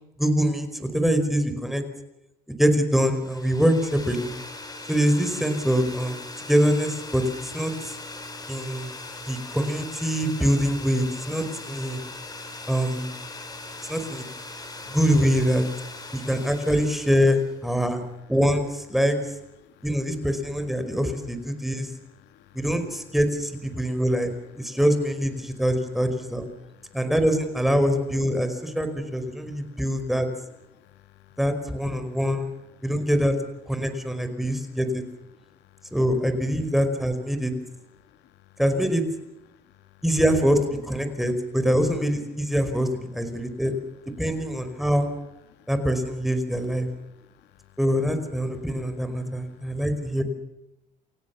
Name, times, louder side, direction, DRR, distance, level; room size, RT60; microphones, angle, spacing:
voice 1, 0.2-1.8 2.6-4.3 4.9-7.9 8.5-8.9 9.3-12.0 12.7-13.1 13.9-14.2 14.9-15.6 16.1-18.0 18.3-19.2 19.8-21.9 22.5-26.5 26.9-30.3 31.4-32.5 32.8-33.3 33.7-35.0 35.9-37.5 38.6-39.0 40.0-43.7 44.2-45.1 45.7-46.9 47.8-50.2, equal, ahead, 8 dB, 5.1 m, -24 dB
sound 1, 3.1-17.6, left 2 dB, 25° left, 5.9 m, -40 dB
voice 2, 15.9-16.3 19.6-19.9 20.8-21.0 21.5-22.6 23.7-23.8 24.6-24.8 26.5-27.1 29.3-30.0 30.7-31.4 32.0-32.2 32.8-32.9 34.4-34.8 35.3-35.9 38.0-38.6 39.5-40.0 43.3-43.6 45.5-45.7 47.0-47.8 49.2-49.9, left 12 dB, 85° left, 8 dB, 2.7 m, -57 dB
29.5 x 16.5 x 7.1 m, 0.92 s
cardioid pair, 110°, 17 cm